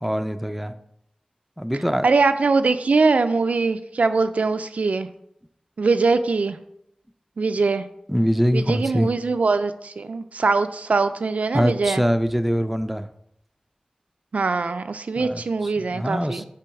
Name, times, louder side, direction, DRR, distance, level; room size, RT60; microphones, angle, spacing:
voice 1, 0.0-0.7 1.6-2.1 8.1-9.1 11.5-13.1 15.2-15.4 15.8-16.4, equal, 5° right, 9 dB, 0.4 m, -23 dB
voice 2, 2.0-5.1 5.8-6.6 7.4-7.9 8.5-12.0 14.3-16.4, right 4 dB, 90° right, 10 dB, 0.3 m, -22 dB
6.9 x 3.0 x 4.7 m, 0.76 s
wide cardioid pair, 40°, 2 cm